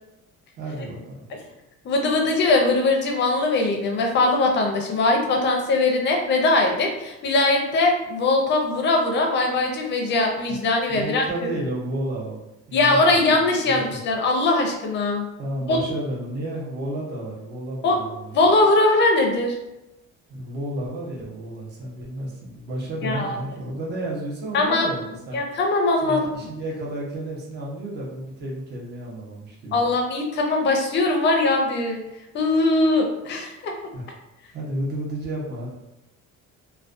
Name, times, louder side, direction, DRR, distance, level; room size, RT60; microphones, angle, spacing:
voice 1, 0.6-1.2 10.9-13.2 13.6-14.0 15.4-18.4 20.3-25.4 26.0-29.8 33.9-34.1 34.5-35.7, right 1 dB, 35° right, -3 dB, 0.7 m, -32 dB
voice 2, 1.8-11.2 12.7-15.3 15.7-15.8 17.8-18.0 18.3-19.6 23.0-23.4 24.5-24.9 25.3-26.3 29.7-32.0 32.3-33.7, left 2 dB, 40° left, 2 dB, 0.5 m, -21 dB
2.3 x 2.2 x 2.4 m, 0.95 s
cardioid pair, 155°, 30 cm